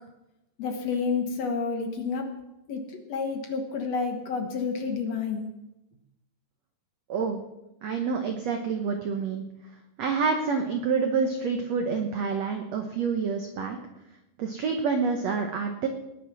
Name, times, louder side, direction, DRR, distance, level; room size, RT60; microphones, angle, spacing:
voice 1, 0.6-2.3 2.7-2.8 3.1-5.5, left 5 dB, 60° left, 4 dB, 1.8 m, -29 dB
voice 2, 7.8-9.4 10.0-13.8 14.4-15.9, right 5 dB, 90° right, 5 dB, 1.4 m, -27 dB
19.5 x 9.6 x 6.2 m, 0.92 s
omnidirectional pair, 4.8 m